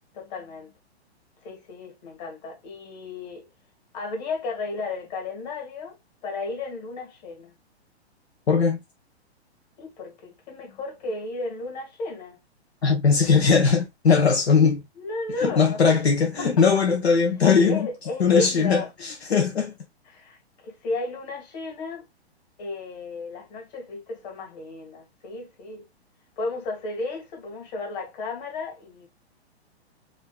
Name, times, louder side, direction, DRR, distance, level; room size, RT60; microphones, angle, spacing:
voice 1, 0.2-0.7 1.4-3.5 3.9-6.0 6.2-7.5 9.8-12.4 15.0-15.8 16.4-16.5 17.7-18.9 20.1-22.0 22.6-25.8 26.4-29.1, left 3 dB, 40° left, 1.9 m, -34 dB
voice 2, 8.5-8.8 12.8-14.8 15.4-17.9 18.2-19.7, left 5 dB, 70° left, 0.9 m, -20 dB
5.2 x 2.7 x 2.2 m
figure-of-eight pair, 115°, 33 cm